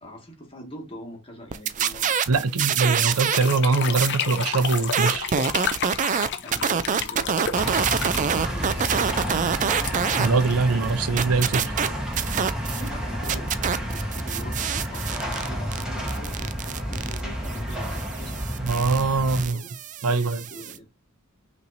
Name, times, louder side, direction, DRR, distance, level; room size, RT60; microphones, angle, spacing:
voice 1, 0.0-3.0 6.4-9.7 12.8-18.4 19.2-19.8 20.1-20.9, equal, 25° left, 1.8 m, -43 dB
sound 1, 1.5-3.6 3.8-10.3 10.6-12.9 13.2-20.8, right 7 dB, 35° right, 0.4 m, -26 dB
voice 2, 2.3-5.3 10.2-11.8 18.6-19.6 20.0-20.4, right 4 dB, 80° right, 0.6 m, -23 dB
sound 2, 3.1-11.1, left 7 dB, 55° left, 0.7 m, -32 dB
sound 3, 7.5-19.4, equal, 5° right, 1.5 m, -30 dB
5.6 x 3.1 x 2.6 m
head